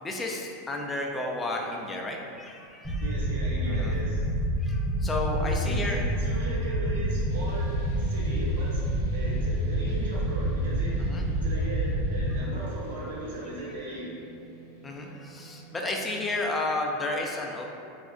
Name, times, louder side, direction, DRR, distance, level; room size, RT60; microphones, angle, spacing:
voice 1, 0.0-3.1 3.7-4.0 4.6-6.0 11.0-11.3 14.8-17.7, left 2 dB, 20° left, 0 dB, 0.3 m, -32 dB
sound 1, 2.8-12.4, right 1 dB, ahead, 0.7 m, -28 dB
voice 2, 3.0-4.3 5.4-14.2, right 2 dB, 80° right, -5 dB, 0.8 m, -38 dB
sound 2, 7.3-16.0, right 1 dB, 80° left, 0.7 m, -51 dB
3.3 x 2.1 x 2.4 m, 2.5 s
hypercardioid pair, 105°, 0 cm